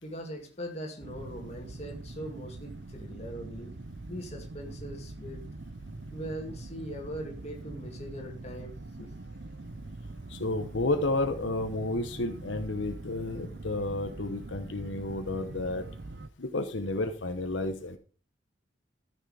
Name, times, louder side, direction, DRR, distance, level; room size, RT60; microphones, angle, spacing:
voice 1, 0.0-3.8 4.1-5.5 6.1-9.1, equal, 35° left, 1 dB, 2.5 m, -41 dB
sound 1, 1.0-16.3, right 2 dB, 60° right, 0.7 m, -43 dB
voice 2, 10.3-15.9 16.4-18.0, left 2 dB, 75° left, 7 dB, 1.0 m, -31 dB
13.0 x 6.6 x 5.0 m, 0.37 s
head